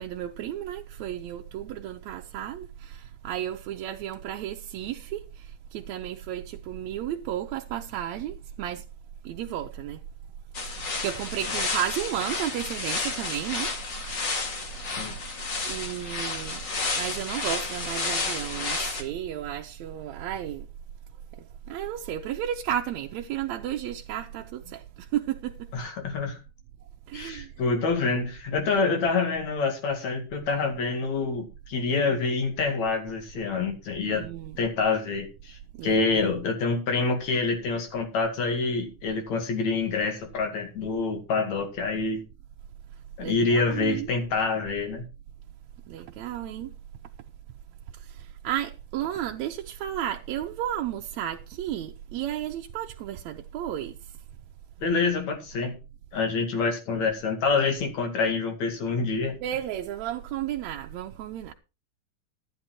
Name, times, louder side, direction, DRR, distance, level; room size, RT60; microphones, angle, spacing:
voice 1, 0.0-8.8 9.2-10.0 10.7-13.7 15.6-16.6 17.0-20.7 21.3-25.7 27.1-27.5 34.1-34.6 35.7-36.3 43.2-44.1 45.9-46.7 47.9-54.0 59.4-61.5, right 11 dB, 75° right, 1.9 m, -33 dB
sound 1, 10.5-19.0, left 3 dB, 40° left, 2.3 m, -31 dB
voice 2, 25.7-26.4 27.1-34.3 34.6-42.2 43.2-45.1 54.8-55.8 56.1-59.4, left 4 dB, 65° left, 3.4 m, -27 dB
12.5 x 9.6 x 4.3 m
omnidirectional pair, 3.5 m